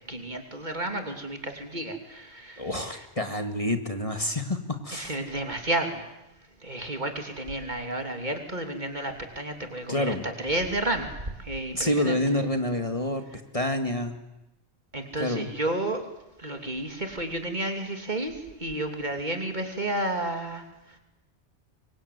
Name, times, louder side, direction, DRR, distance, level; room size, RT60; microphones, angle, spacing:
voice 1, 0.1-2.7 3.0-3.1 4.9-6.1 6.6-12.2 14.9-16.0 16.4-21.0, right 1 dB, 40° right, 5 dB, 3.2 m, -31 dB
voice 2, 2.6-5.2 9.9-10.3 11.7-13.2 13.5-14.1 15.2-15.5, left 1 dB, 30° left, 6 dB, 2.0 m, -28 dB
25.5 x 23.5 x 9.5 m, 0.95 s
omnidirectional pair, 1.2 m